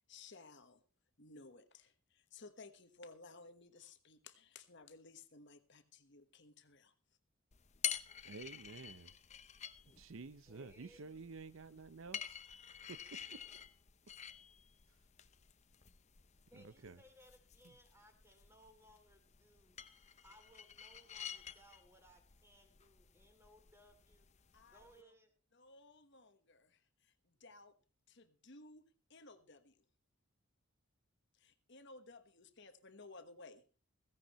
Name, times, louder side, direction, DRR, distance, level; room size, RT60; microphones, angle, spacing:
voice 1, 0.1-0.8 1.2-6.9 24.5-25.1 25.5-27.7 28.1-29.8 31.3-33.6, left 3 dB, 50° left, 1.3 m, -58 dB
sound 1, 7.5-25.0, left 9 dB, 30° left, 0.7 m, -49 dB
voice 2, 8.2-9.1 10.0-12.4 12.9-13.4 16.5-17.0 17.6-17.7, right 4 dB, 60° right, 0.6 m, -51 dB
voice 3, 10.5-11.3 16.5-24.3 24.7-25.3, equal, 10° right, 2.8 m, -65 dB
16.0 x 15.5 x 3.1 m
head